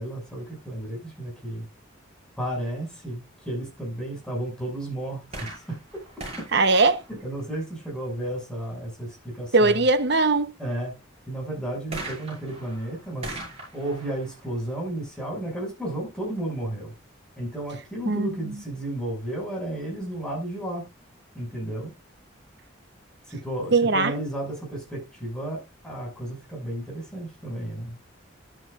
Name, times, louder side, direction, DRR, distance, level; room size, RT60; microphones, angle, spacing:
voice 1, 0.0-1.7 2.4-5.8 7.1-9.8 10.6-11.0 11.3-13.4 13.7-16.9 17.4-20.9 21.3-21.9 23.2-28.0, right 1 dB, 5° left, 6.9 m, -33 dB
sound 1, 5.3-7.8 11.9-15.6 16.4-16.5, right 2 dB, 30° right, 6.1 m, -41 dB
voice 2, 6.5-7.0 9.5-10.6 18.1-18.5 23.7-24.1, right 3 dB, 55° right, 1.1 m, -20 dB
12.5 x 10.0 x 2.6 m
head